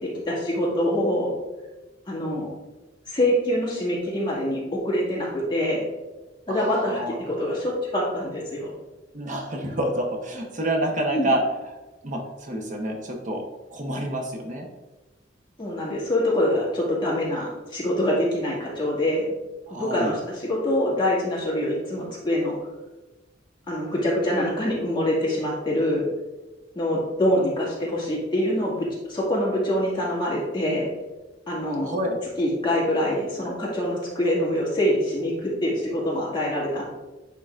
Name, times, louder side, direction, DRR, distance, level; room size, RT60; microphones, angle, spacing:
voice 1, 0.0-1.3 2.1-2.5 3.1-5.8 6.5-7.0 7.3-8.7 11.1-11.3 15.6-19.3 19.7-22.5 23.7-26.1 26.7-30.9 31.5-31.9 32.4-36.8, left 1 dB, 25° left, -5 dB, 2.1 m, -25 dB
voice 2, 6.5-7.2 9.1-11.4 12.0-13.4 13.7-14.7 19.7-20.1 31.8-32.2, right 1 dB, 45° right, 2 dB, 1.0 m, -28 dB
10.0 x 3.8 x 2.5 m, 1.1 s
head